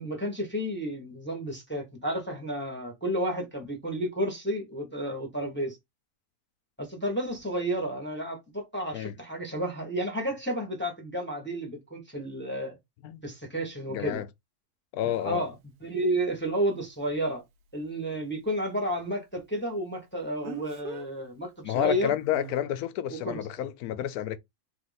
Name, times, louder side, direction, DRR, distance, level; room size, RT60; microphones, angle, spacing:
voice 1, 0.0-5.8 6.8-12.8 13.2-14.2 15.0-15.5 15.8-17.4 17.7-22.1 23.1-23.4, right 1 dB, 10° left, 1.1 m, -31 dB
voice 2, 13.9-14.3 14.9-15.4 21.6-24.4, left 11 dB, 80° left, 1.1 m, -30 dB
Speech, 15.1-15.2 20.4-21.1 22.3-22.6, right 9 dB, 90° right, 1.3 m, -40 dB
3.5 x 2.9 x 3.9 m
omnidirectional pair, 1.6 m